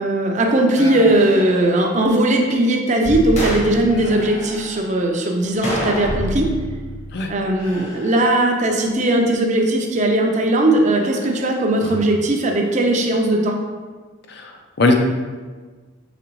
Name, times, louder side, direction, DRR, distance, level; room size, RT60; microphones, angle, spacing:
voice 1, 0.0-6.5 7.3-13.6, right 1 dB, 35° right, 1 dB, 0.5 m, -18 dB
sound 1, 0.7-2.5 3.0-3.3 3.9-5.7 7.5-8.9 10.9-12.0 12.5-12.9, equal, 85° left, 1.0 m, -38 dB
sound 2, 3.0-4.5 6.1-7.5, equal, 65° right, 0.8 m, -29 dB
sound 3, 3.4-3.8 5.6-6.5 6.7-6.8 11.9-12.0, equal, 30° left, 0.9 m, -26 dB
voice 2, 14.3-14.9, left 2 dB, 50° left, 3 dB, 0.5 m, -20 dB
4.9 x 3.4 x 3.1 m, 1.4 s
head